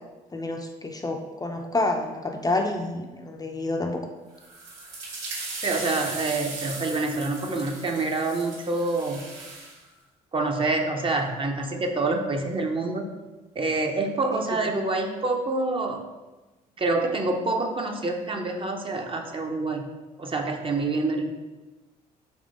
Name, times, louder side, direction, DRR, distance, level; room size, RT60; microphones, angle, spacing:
voice 1, 0.3-4.0, left 2 dB, 20° left, 2 dB, 0.5 m, -28 dB
sound 1, 4.4-9.8, right 3 dB, 75° right, 1.5 m, -37 dB
voice 2, 5.6-9.2 10.3-13.1 13.6-16.0 16.8-19.9 20.2-21.3, right 2 dB, 30° right, 3 dB, 0.7 m, -27 dB
3.6 x 3.2 x 3.7 m, 1.1 s
hypercardioid pair, 60°, 18 cm